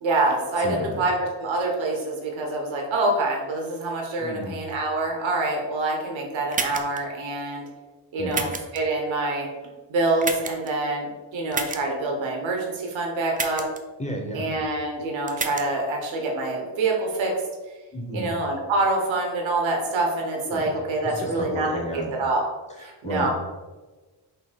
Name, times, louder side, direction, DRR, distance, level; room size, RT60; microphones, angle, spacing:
voice 1, 0.0-7.6 8.1-9.5 9.9-13.6 14.3-17.3 17.7-17.8 18.1-21.7 21.9-22.4 22.8-23.3, right 2 dB, 85° right, 0 dB, 0.9 m, -26 dB
voice 2, 0.6-1.1 4.2-4.6 8.2-8.5 14.0-14.6 17.9-18.3 20.5-20.8 21.0-22.1 22.7-23.3, equal, 15° left, 0 dB, 1.0 m, -32 dB
sound 1, 6.5-7.0 8.3-8.8 10.2-10.7 11.5-11.8 13.3-13.8 15.3-15.6, right 4 dB, 20° right, 0.4 m, -29 dB
3.9 x 2.6 x 4.3 m, 1.2 s
cardioid pair, 70°, 45 cm